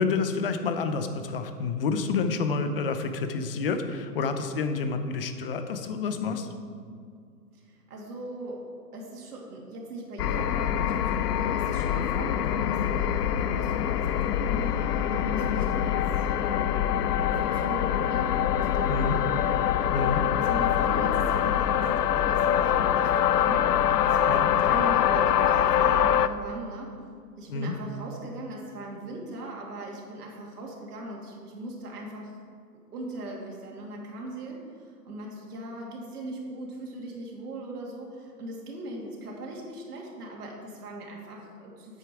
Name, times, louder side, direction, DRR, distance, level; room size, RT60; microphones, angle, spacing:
voice 1, 0.0-6.5 18.9-19.2 19.9-20.2 24.3-24.5 27.5-27.7, left 4 dB, 35° left, 8 dB, 0.7 m, -28 dB
voice 2, 7.5-8.7 8.9-16.9 17.3-19.4 20.0-23.7 24.0-26.9 27.4-32.4 32.9-42.0, right 1 dB, 65° right, -2 dB, 2.7 m, -39 dB
sound 1, 10.2-26.3, left 10 dB, 70° left, 0.6 m, -24 dB
8.6 x 8.5 x 4.7 m, 2.2 s
hypercardioid pair, 150°, 49 cm